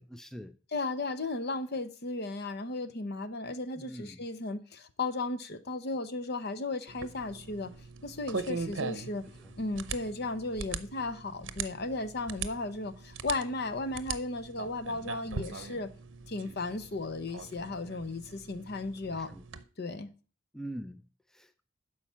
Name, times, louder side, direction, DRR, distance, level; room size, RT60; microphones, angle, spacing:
voice 1, 0.0-0.6 3.8-4.2 9.2-9.5 19.0-19.4 20.5-21.6, right 1 dB, 5° left, 0.4 m, -44 dB
voice 2, 0.7-7.7 8.0-9.2 9.6-15.9 16.3-19.3 19.8-20.1, left 2 dB, 55° left, 0.8 m, -35 dB
sound 1, 6.9-19.6, right 5 dB, 65° right, 0.7 m, -41 dB
12.0 x 4.8 x 5.6 m
head